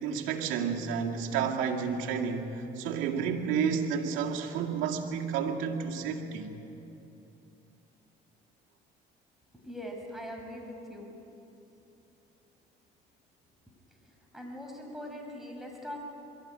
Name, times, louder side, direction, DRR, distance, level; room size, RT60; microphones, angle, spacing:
voice 1, 0.0-6.6, right 6 dB, 80° right, 1 dB, 2.1 m, -31 dB
voice 2, 9.6-11.1 14.3-16.0, equal, ahead, 1 dB, 5.9 m, -41 dB
22.5 x 13.5 x 9.9 m, 3.0 s
supercardioid pair, 70°, 20 cm